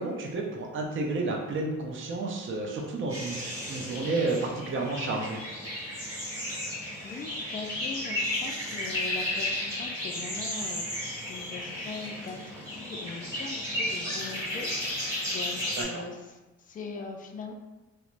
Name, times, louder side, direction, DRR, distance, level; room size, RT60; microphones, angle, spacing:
voice 1, 0.0-5.4 15.8-16.0, right 3 dB, 40° right, 0 dB, 0.6 m, -31 dB
sound 1, 3.1-15.8, left 1 dB, 10° right, 1.3 m, -34 dB
voice 2, 7.0-17.5, left 4 dB, 30° left, 4 dB, 0.4 m, -41 dB
3.0 x 2.1 x 2.5 m, 1.1 s
cardioid pair, 90°, 30 cm